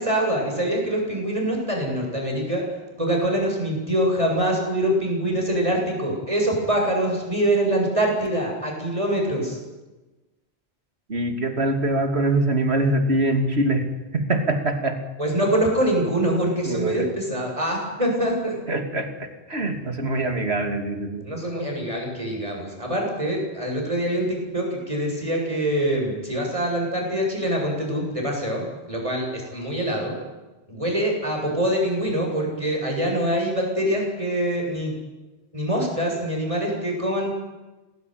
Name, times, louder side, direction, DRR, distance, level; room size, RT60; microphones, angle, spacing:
voice 1, 0.0-2.6 3.0-9.6 15.2-18.6 21.2-30.2 30.7-34.9 35.5-37.4, right 1 dB, 30° right, 0 dB, 8.2 m, -24 dB
voice 2, 11.1-13.9 14.1-15.0 16.6-17.1 18.7-21.3, right 2 dB, 70° right, 6 dB, 3.2 m, -23 dB
27.0 x 19.5 x 9.5 m, 1.1 s
omnidirectional pair, 1.1 m